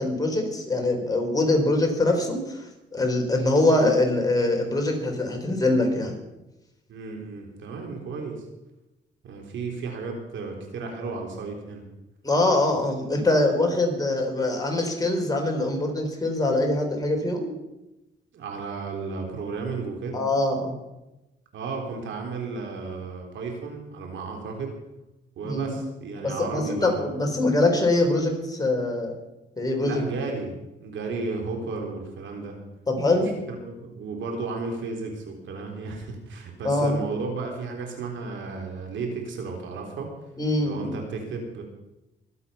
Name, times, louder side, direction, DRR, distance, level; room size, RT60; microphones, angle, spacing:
voice 1, 0.0-6.1 12.2-17.5 20.1-20.8 25.4-25.7 26.2-29.1 29.6-30.0 32.9-33.3 36.6-36.9 40.4-40.8, left 2 dB, 20° left, 1 dB, 4.5 m, -23 dB
voice 2, 6.9-8.4 9.2-11.9 18.3-20.3 21.5-24.7 25.4-27.1 29.8-30.5 30.8-32.6 33.5-40.1 40.6-41.6, right 4 dB, 75° right, 2 dB, 3.8 m, -33 dB
23.5 x 8.3 x 5.7 m, 0.97 s
cardioid pair, 90°, 20 cm